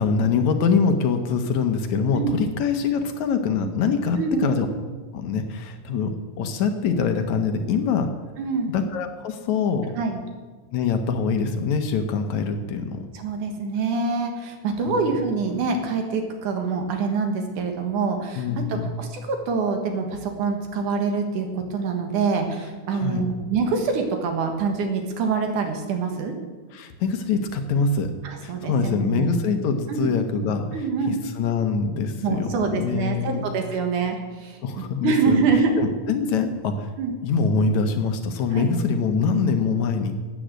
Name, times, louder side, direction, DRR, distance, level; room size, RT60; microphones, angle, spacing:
voice 1, 0.0-4.7 5.1-8.1 8.7-9.9 10.7-13.1 14.9-15.2 18.4-18.9 22.9-23.2 26.7-28.1 28.4-30.7 31.1-33.4 34.6-35.4 35.8-36.9 37.2-40.1, left 5 dB, 70° left, 6 dB, 2.1 m, -24 dB
voice 2, 4.2-4.6 8.4-8.7 9.9-10.2 13.1-26.3 28.2-29.3 29.9-30.2 30.7-31.2 32.2-34.6 35.0-35.7 37.0-37.1 38.5-38.7, right 5 dB, 70° right, 4 dB, 2.9 m, -25 dB
13.0 x 9.1 x 7.5 m, 1.4 s
omnidirectional pair, 3.7 m